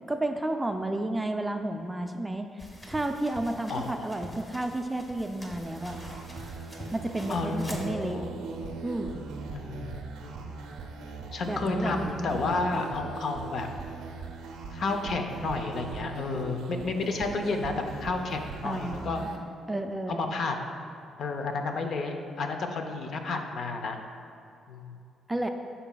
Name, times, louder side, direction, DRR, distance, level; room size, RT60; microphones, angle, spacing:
voice 1, 0.1-6.0 6.9-8.2 8.8-9.2 11.5-12.3 18.6-19.3 19.7-20.2 25.3-25.5, right 1 dB, 10° right, 5 dB, 0.3 m, -32 dB
sound 1, 2.6-7.9, left 1 dB, 25° left, 0.9 m, -45 dB
voice 2, 3.7-4.2 7.3-8.3 9.5-10.6 11.3-13.7 14.7-19.2 20.1-20.6 21.2-24.0 24.7-25.0, left 3 dB, 60° left, 5 dB, 0.6 m, -31 dB
sound 2, 5.6-19.4, right 4 dB, 85° right, 0.5 m, -40 dB
11.0 x 4.0 x 2.3 m, 2.5 s
cardioid pair, 90°, 0 cm